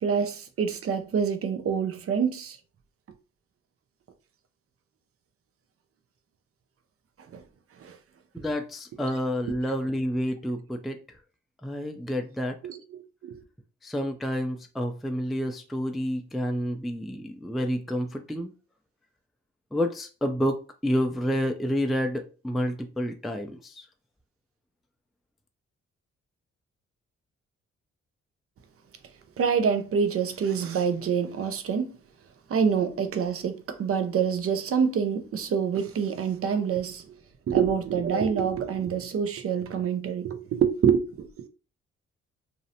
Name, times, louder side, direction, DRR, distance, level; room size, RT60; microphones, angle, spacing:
voice 1, 0.0-2.6 7.3-7.4 7.8-8.0 12.6-13.4 29.4-31.9 32.5-37.1 37.5-41.5, right 7 dB, 50° right, 0.6 m, -26 dB
voice 2, 8.3-11.0 11.6-12.6 13.8-18.5 19.7-23.9, equal, ahead, 0.4 m, -29 dB
2.6 x 2.0 x 2.7 m
supercardioid pair, 50°, 29 cm